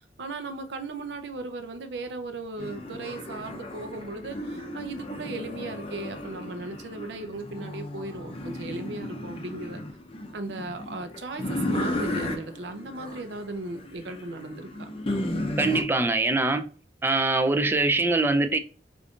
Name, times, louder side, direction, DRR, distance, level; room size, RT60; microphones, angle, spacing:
voice 1, 0.2-9.8 10.3-14.9, right 3 dB, 70° right, 0.5 m, -37 dB
sound 1, 2.6-15.8, left 1 dB, 35° left, 0.6 m, -34 dB
voice 2, 15.6-16.7 17.0-18.6, right 2 dB, 15° right, 0.3 m, -23 dB
5.0 x 2.5 x 2.4 m
head